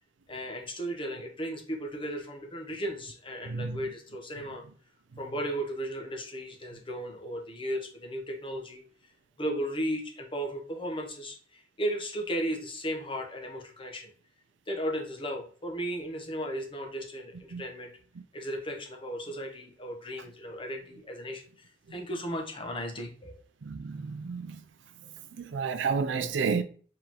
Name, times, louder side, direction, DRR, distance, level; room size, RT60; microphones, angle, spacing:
voice 1, 0.3-4.6 5.2-8.8 9.4-14.1 14.7-17.9 18.3-23.4, equal, 30° left, 0.9 m, -35 dB
voice 2, 3.4-3.8 17.5-17.6 23.6-24.6 25.4-26.6, right 5 dB, 75° right, 0.5 m, -31 dB
4.8 x 3.7 x 2.9 m
head